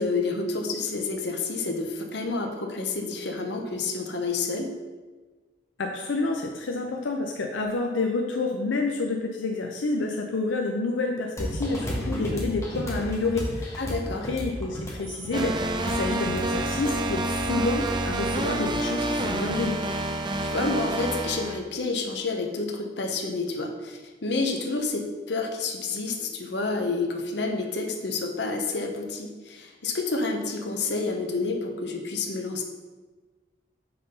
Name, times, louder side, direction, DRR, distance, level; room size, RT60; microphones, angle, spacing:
voice 1, 0.0-4.7 13.8-14.3 20.4-32.6, left 3 dB, 60° left, 3 dB, 0.9 m, -29 dB
voice 2, 5.8-13.8 14.3-19.8, left 3 dB, 85° left, 2 dB, 0.6 m, -29 dB
sound 1, 11.4-18.9, equal, 15° left, 1.2 m, -34 dB
sound 2, 15.3-21.6, right 2 dB, 25° right, 0.5 m, -28 dB
5.7 x 4.0 x 5.5 m, 1.3 s
head